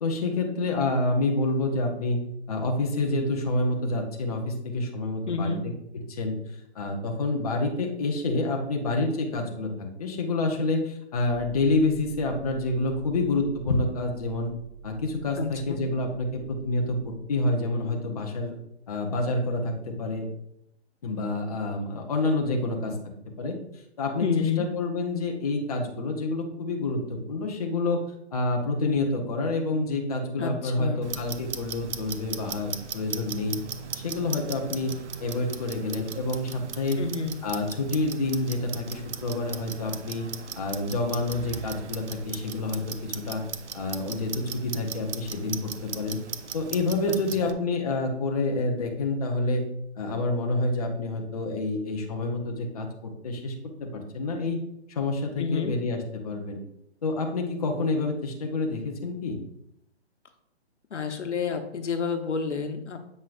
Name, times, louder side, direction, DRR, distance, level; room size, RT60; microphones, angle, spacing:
voice 1, 0.0-5.5 6.1-6.4 6.7-14.5 14.8-18.5 18.9-20.3 21.0-23.0 23.4-28.0 28.3-33.6 33.9-37.0 37.4-40.3 40.5-43.4 43.7-46.2 46.5-49.7 50.0-54.6 54.9-56.6 57.0-59.4, left 2 dB, 35° left, 1 dB, 0.9 m, -28 dB
voice 2, 5.3-5.6 15.4-15.8 24.2-24.7 30.4-31.1 37.0-37.4 47.1-47.6 55.4-55.7 60.9-63.0, left 5 dB, 90° left, 7 dB, 1.1 m, -29 dB
sound 1, 11.2-17.2, right 7 dB, 50° right, 1.5 m, -45 dB
Clock, 31.0-47.5, right 6 dB, 80° right, 0.7 m, -38 dB
7.7 x 5.4 x 2.5 m, 0.76 s
hypercardioid pair, 165°, 34 cm